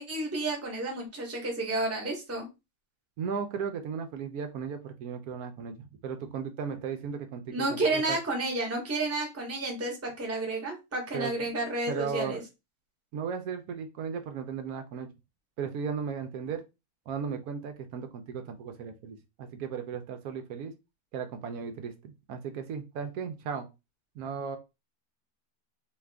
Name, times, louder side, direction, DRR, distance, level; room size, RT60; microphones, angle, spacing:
voice 1, 0.0-2.5 7.5-12.4, right 2 dB, 10° right, 0 dB, 0.7 m, -31 dB
voice 2, 3.2-8.2 11.1-11.5 11.9-12.4 13.1-15.1 15.6-16.6 17.1-20.7 21.1-23.7 24.2-24.6, right 6 dB, 75° right, 6 dB, 1.0 m, -36 dB
2.8 x 2.4 x 3.3 m, 0.25 s
omnidirectional pair, 1.6 m